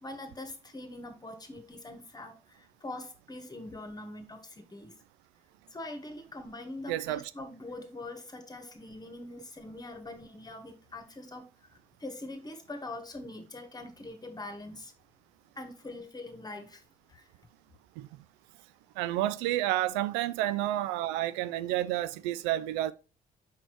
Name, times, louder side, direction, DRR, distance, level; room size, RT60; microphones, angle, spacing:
voice 1, 0.0-4.9 5.7-14.9 15.5-16.8 17.1-17.3, left 2 dB, 20° left, 1.4 m, -43 dB
voice 2, 6.9-7.2 18.0-18.1 19.0-22.9, right 14 dB, 60° right, 0.5 m, -30 dB
6.0 x 4.6 x 4.5 m
figure-of-eight pair, 45°, 20 cm